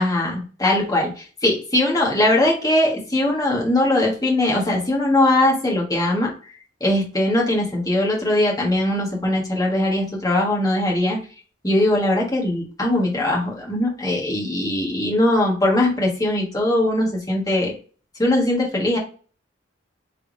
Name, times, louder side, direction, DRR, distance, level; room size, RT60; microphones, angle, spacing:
voice 1, 0.0-6.3 6.8-11.2 11.6-17.7 18.2-19.0, left 1 dB, 20° left, -2 dB, 1.4 m, -20 dB
3.5 x 3.4 x 3.9 m, 0.37 s
head